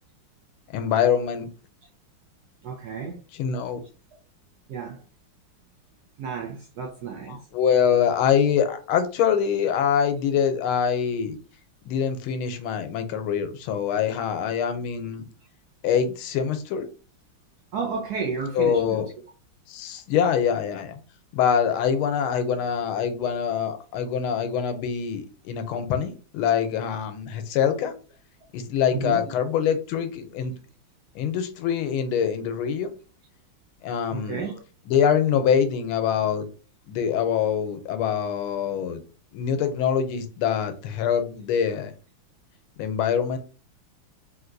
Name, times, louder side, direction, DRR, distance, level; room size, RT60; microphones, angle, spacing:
voice 1, 0.7-1.5 3.4-3.8 7.3-11.4 11.8-15.3 15.8-16.8 18.5-19.1 19.7-21.0 21.3-27.9 28.5-30.5 31.1-32.9 33.8-34.5 34.9-36.4 36.9-39.0 39.3-41.9 42.8-43.4, left 8 dB, 90° left, 1.5 m, -24 dB
voice 2, 2.6-3.2 4.7-5.0 6.2-7.4 17.7-19.1 28.9-29.2 34.1-34.6, right 5 dB, 75° right, 0.9 m, -31 dB
3.5 x 2.8 x 2.5 m
omnidirectional pair, 2.3 m